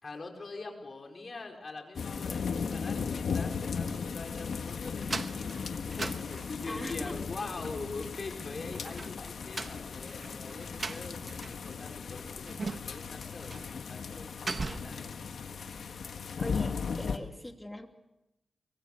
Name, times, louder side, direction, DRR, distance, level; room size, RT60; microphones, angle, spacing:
voice 1, 0.0-5.6 5.9-13.6 13.9-15.0, left 3 dB, 45° left, 2 dB, 5.1 m, -43 dB
sound 1, 2.0-17.2, left 5 dB, 80° left, 1.5 m, -37 dB
sound 2, 5.0-6.9 8.7-11.7 11.9-12.0 12.5-13.1 13.5-13.7 14.0-15.0, right 3 dB, 45° right, 1.3 m, -39 dB
voice 2, 6.7-7.1 16.4-17.9, left 1 dB, 10° left, 4 dB, 2.9 m, -41 dB
24.5 x 23.5 x 6.8 m, 0.91 s
cardioid pair, 80°, 0 cm